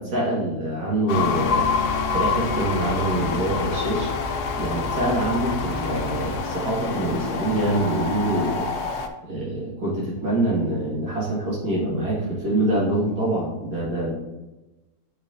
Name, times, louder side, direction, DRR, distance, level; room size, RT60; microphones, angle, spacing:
voice 1, 0.0-4.1 4.6-8.7 9.2-14.1, right 1 dB, 75° right, -6 dB, 2.4 m, -25 dB
sound 1, 1.1-9.1, left 5 dB, 75° left, 1.2 m, -27 dB
sound 2, 1.3-6.4, left 1 dB, 60° left, 0.3 m, -35 dB
8.4 x 4.6 x 2.6 m, 1.1 s
omnidirectional pair, 1.7 m